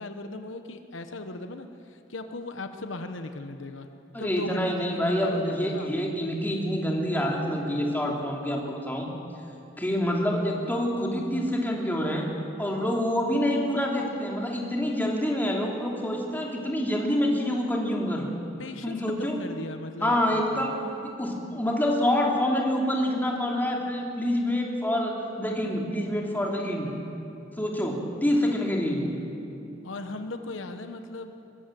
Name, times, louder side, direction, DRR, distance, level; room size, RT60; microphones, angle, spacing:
voice 1, 0.0-3.9 4.2-6.0 18.6-20.7 29.8-31.3, left 2 dB, 75° left, 7 dB, 1.2 m, -37 dB
voice 2, 4.1-9.1 9.8-12.3 12.6-18.3 18.8-19.4 20.0-20.8 21.0-26.9 27.6-29.1, equal, 10° left, -1 dB, 3.1 m, -27 dB
22.0 x 22.0 x 7.7 m, 2.8 s
head